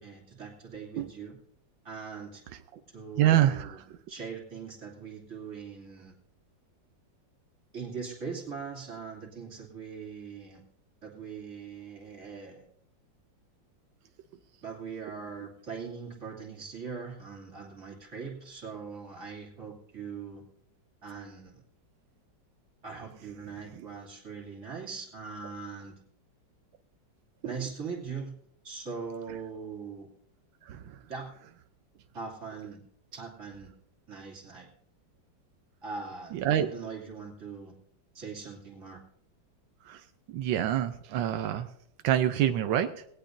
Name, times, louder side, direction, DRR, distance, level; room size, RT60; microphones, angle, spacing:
voice 1, 0.0-1.4 1.8-2.4 2.9-3.8 4.1-6.2 7.7-10.6 11.0-12.7 14.6-20.4 21.0-21.6 22.8-26.0 27.4-28.3 28.6-30.1 31.1-31.3 32.1-32.8 33.1-33.7 34.1-34.7 35.8-37.8 38.1-39.0, right 5 dB, 40° right, -2 dB, 3.1 m, -41 dB
voice 2, 3.2-3.7 23.8-23.9 30.7-31.0 36.3-36.7 39.9-40.0 40.3-41.7 42.0-42.9, right 11 dB, 90° right, 8 dB, 1.5 m, -26 dB
19.5 x 17.5 x 2.6 m, 0.70 s
omnidirectional pair, 2.0 m